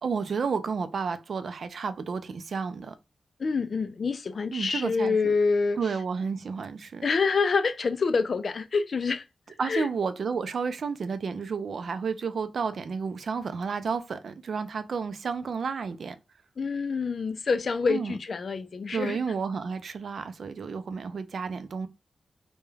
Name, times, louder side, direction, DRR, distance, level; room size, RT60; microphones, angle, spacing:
voice 1, 0.0-2.9 4.5-5.2 5.8-7.0 9.6-16.2 17.9-18.2 18.9-21.9, right 5 dB, 70° right, 0.4 m, -31 dB
voice 2, 3.4-5.8 7.0-9.2 9.7-9.9 16.6-19.2, left 4 dB, 55° left, 0.3 m, -26 dB
2.3 x 2.1 x 3.0 m
wide cardioid pair, 105°, 0 cm